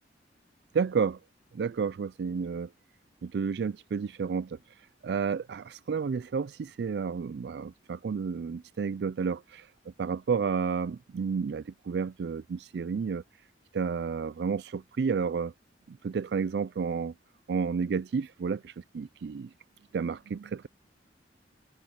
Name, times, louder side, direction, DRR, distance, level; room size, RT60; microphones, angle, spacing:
voice 1, 0.7-1.2 1.5-2.7 3.2-4.6 5.0-9.7 10.0-13.2 13.7-15.5 15.9-17.1 17.5-19.5 19.9-20.7, right 5 dB, 65° right, 0.3 m, -31 dB
head